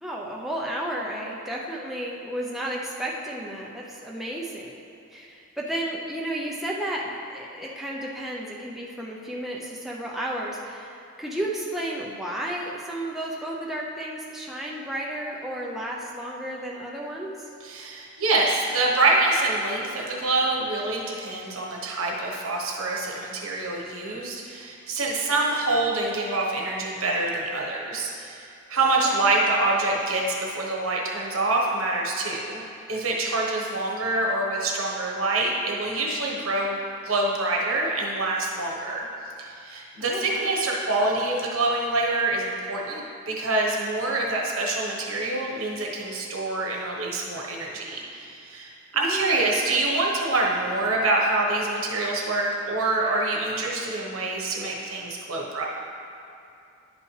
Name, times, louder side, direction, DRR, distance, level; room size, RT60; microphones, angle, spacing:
voice 1, 0.0-4.8 5.1-17.4 29.0-29.2 40.0-40.5 48.9-49.3, right 1 dB, ahead, -4 dB, 0.5 m, -33 dB
voice 2, 17.6-28.4 28.7-36.8 37.0-39.0 39.4-55.6, right 2 dB, 80° right, -2 dB, 1.2 m, -26 dB
10.5 x 5.4 x 3.2 m, 2.6 s
head